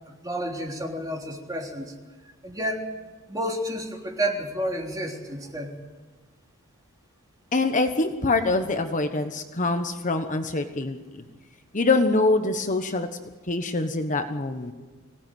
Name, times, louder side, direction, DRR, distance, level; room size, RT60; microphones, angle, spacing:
voice 1, 0.1-1.9 2.4-2.9 3.3-5.8 14.6-14.7, right 1 dB, 15° right, 0 dB, 3.5 m, -30 dB
voice 2, 7.5-11.2 11.7-13.1 13.5-14.7, left 3 dB, 35° left, 7 dB, 1.2 m, -24 dB
24.5 x 18.0 x 9.3 m, 1.3 s
head